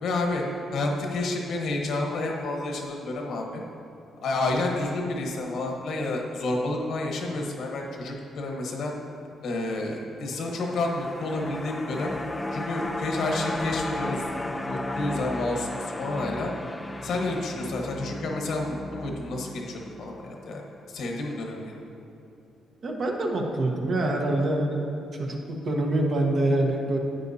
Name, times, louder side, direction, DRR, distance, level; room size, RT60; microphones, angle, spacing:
voice 1, 0.0-0.4 0.7-3.6 4.2-8.9 9.4-12.1 12.5-14.2 14.6-16.5 17.0-20.6 20.9-21.7, left 2 dB, 70° left, 1 dB, 1.3 m, -30 dB
sound 1, 10.3-20.7 21.1-21.2, left 1 dB, 15° left, 0.5 m, -35 dB
voice 2, 22.8-24.8 25.1-27.0, right 1 dB, 55° right, 1 dB, 1.2 m, -25 dB
10.0 x 8.4 x 2.8 m, 2.7 s
cardioid pair, 90°, 0 cm